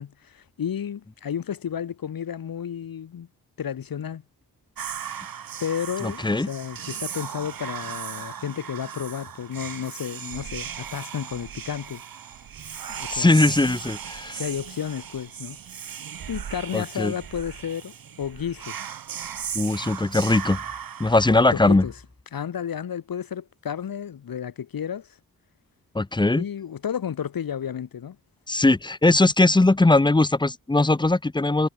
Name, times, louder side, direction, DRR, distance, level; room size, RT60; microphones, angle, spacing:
voice 1, 0.0-3.3 3.6-4.2 5.6-12.0 12.9-13.5 14.3-15.6 16.3-18.9 21.3-21.9 22.3-25.2 26.3-28.2, left 8 dB, 85° left, 3.6 m, -32 dB
Whispering, 4.8-21.9, right 8 dB, 85° right, 4.8 m, -37 dB
voice 2, 6.0-6.5 13.1-14.4 16.7-17.1 19.5-20.6 21.0-21.8 25.9-26.4 28.5-31.7, left 2 dB, 15° left, 1.0 m, -20 dB
wide cardioid pair, 140°, 34 cm